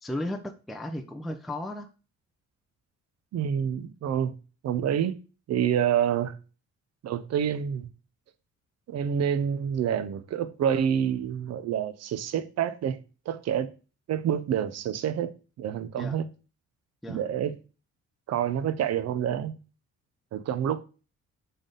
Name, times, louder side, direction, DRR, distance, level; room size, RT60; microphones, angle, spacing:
voice 1, 0.0-1.9 16.0-16.2 17.0-17.2, left 1 dB, ahead, 0.4 m, -35 dB
voice 2, 3.3-4.3 4.6-5.2 5.5-6.4 7.0-7.9 8.9-13.0 13.3-13.7 14.1-15.3 15.6-16.3 17.1-17.5 18.3-19.6 20.3-20.8, right 9 dB, 60° right, 0.5 m, -27 dB
3.9 x 3.4 x 3.7 m
cardioid pair, 90°, 30 cm